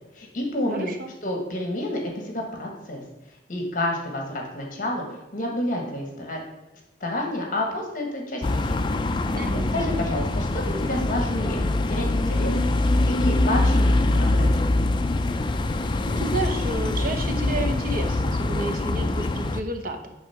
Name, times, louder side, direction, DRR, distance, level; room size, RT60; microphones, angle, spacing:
voice 1, 0.1-0.9 1.2-3.0 3.5-5.0 5.3-6.4 7.0-8.8 9.7-12.5 13.1-14.5, left 1 dB, 50° left, 0 dB, 1.4 m, -29 dB
voice 2, 0.7-1.1 9.4-9.7 16.1-20.1, right 2 dB, 50° right, 5 dB, 0.9 m, -31 dB
sound 1, 8.4-19.6, left 2 dB, 25° left, 0.4 m, -23 dB
9.0 x 3.6 x 5.7 m, 1.0 s
head